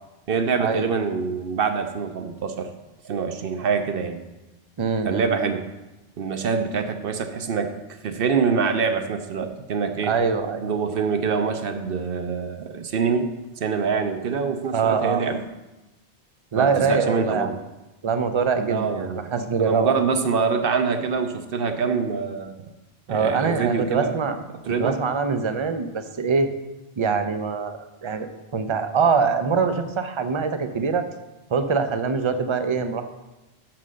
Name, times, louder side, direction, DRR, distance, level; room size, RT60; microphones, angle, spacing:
voice 1, 0.3-2.7 3.0-4.2 5.0-5.7 6.2-10.1 10.6-15.4 16.6-17.6 18.7-22.6 23.1-24.2 24.6-25.0, right 5 dB, 55° right, 7 dB, 0.8 m, -25 dB
voice 2, 4.8-5.3 10.0-10.6 14.7-15.2 16.5-17.5 18.0-20.0 23.1-24.4 24.7-26.5 27.0-27.7 28.0-31.1 31.5-33.0, right 5 dB, 40° right, 8 dB, 0.4 m, -23 dB
6.6 x 5.9 x 6.3 m, 1.0 s
omnidirectional pair, 1.2 m